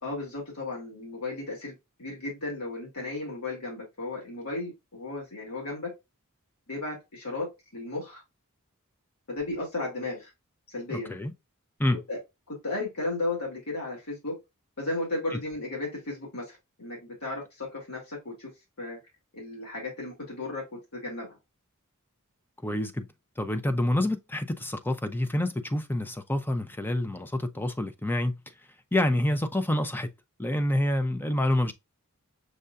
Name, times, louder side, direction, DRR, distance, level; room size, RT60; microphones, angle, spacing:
voice 1, 0.0-5.9 6.7-8.2 9.3-10.3 10.7-11.1 12.1-12.2 12.5-14.4 14.8-18.5 18.8-19.0 19.3-21.4, left 2 dB, 75° left, 2.3 m, -35 dB
voice 2, 10.9-11.3 11.8-12.0 15.3-15.4 22.6-23.1 23.4-28.4 28.9-30.1 30.4-31.7, left 1 dB, 10° left, 0.6 m, -27 dB
6.5 x 2.6 x 2.2 m
head